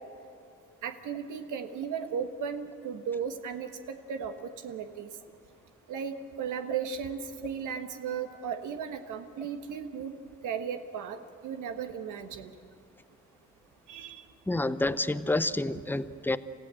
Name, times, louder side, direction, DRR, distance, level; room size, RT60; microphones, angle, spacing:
voice 1, 0.8-5.1 5.9-10.1 10.4-11.2 11.4-12.5 13.9-14.2, right 7 dB, 80° right, 7 dB, 1.4 m, -36 dB
voice 2, 14.5-16.4, left 2 dB, 5° left, 14 dB, 0.7 m, -28 dB
28.0 x 15.0 x 7.7 m, 2.5 s
cardioid pair, 90°, 30 cm